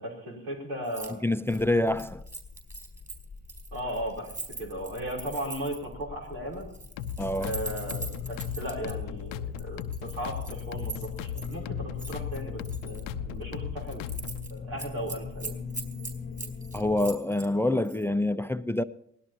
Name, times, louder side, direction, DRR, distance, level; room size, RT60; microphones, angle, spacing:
voice 1, 0.0-1.2 3.7-6.7 7.4-14.1 14.5-15.6, equal, 85° right, 3.7 m, -36 dB
Keys jangling, 0.8-1.1 1.4-5.9 6.6-8.9 9.6-11.6 12.0-13.0 13.4-13.6 13.9-14.5 14.8-17.5 17.8-18.0, right 3 dB, 20° right, 4.2 m, -41 dB
voice 2, 1.2-2.2 7.2-7.5 16.7-18.8, left 1 dB, 5° left, 0.5 m, -26 dB
sound 1, 1.9-17.2, left 5 dB, 25° left, 1.0 m, -43 dB
sound 2, 7.0-14.5, left 9 dB, 85° left, 0.6 m, -37 dB
23.0 x 17.5 x 2.9 m
hypercardioid pair, 40°, 35 cm